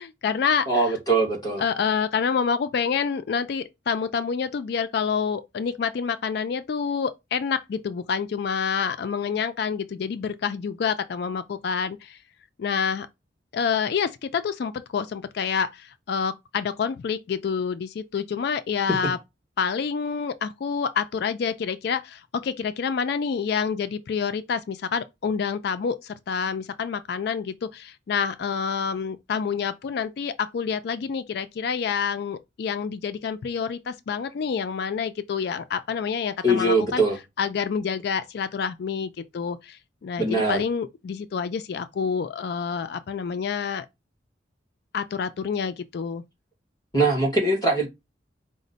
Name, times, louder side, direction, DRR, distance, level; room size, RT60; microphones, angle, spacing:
voice 1, 0.0-0.7 1.6-12.2 12.6-13.1 13.5-19.2 19.6-37.0 37.4-43.9 44.9-46.2, left 6 dB, 60° left, 0.3 m, -27 dB
voice 2, 0.7-1.6 36.4-37.2 40.2-40.6 46.9-47.9, right 2 dB, 20° left, 1.2 m, -22 dB
5.0 x 2.1 x 3.9 m
head